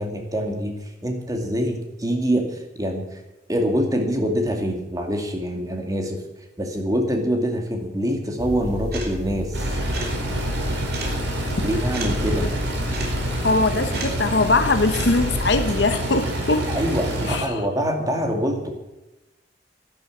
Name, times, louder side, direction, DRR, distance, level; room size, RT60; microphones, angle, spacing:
voice 1, 0.0-3.2 3.5-6.2 6.6-9.7 11.6-12.6 16.7-18.7, equal, 20° right, 3 dB, 2.4 m, -25 dB
sound 1, 8.4-15.8, equal, 60° right, 3.4 m, -31 dB
sound 2, 9.5-17.4, right 1 dB, 85° right, 4.2 m, -27 dB
voice 2, 13.4-16.7 17.3-17.6, left 3 dB, 70° left, 8 dB, 0.9 m, -21 dB
11.5 x 11.5 x 7.3 m, 1.0 s
head